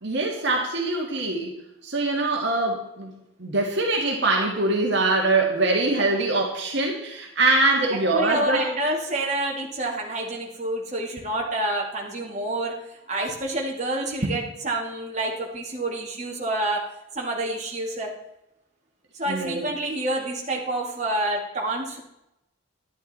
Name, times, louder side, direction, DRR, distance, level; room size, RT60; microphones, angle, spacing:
voice 1, 0.0-8.7 19.3-19.7, right 2 dB, 60° right, 0 dB, 2.0 m, -23 dB
voice 2, 8.1-12.8 13.1-16.9 17.1-18.1 19.2-22.0, right 1 dB, 35° right, -2 dB, 2.3 m, -28 dB
11.5 x 11.0 x 4.3 m, 0.88 s
head